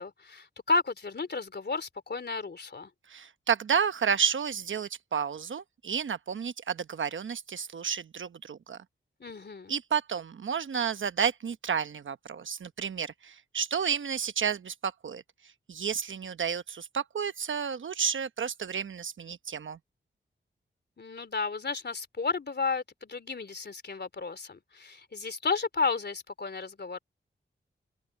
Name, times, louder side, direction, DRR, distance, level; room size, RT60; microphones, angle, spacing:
voice 1, 0.0-2.9 9.2-9.7 21.0-27.0, left 4 dB, 55° left, 3.3 m, -32 dB
voice 2, 3.1-8.8 9.7-15.2 15.7-19.8, right 7 dB, 75° right, 1.0 m, -31 dB
cardioid pair, 50°, 20 cm